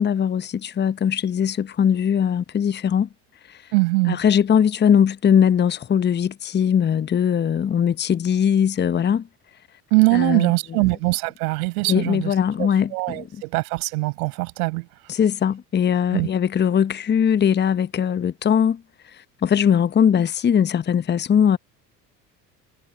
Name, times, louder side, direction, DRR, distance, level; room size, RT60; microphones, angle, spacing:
voice 1, 0.0-3.1 4.1-9.3 10.1-10.5 11.8-13.2 15.1-18.8 19.4-21.6, left 8 dB, 20° left, 0.9 m, -20 dB
voice 2, 3.7-4.2 9.9-14.9 16.1-16.3, right 26 dB, 65° right, 6.7 m, -22 dB
figure-of-eight pair, 60°, 47 cm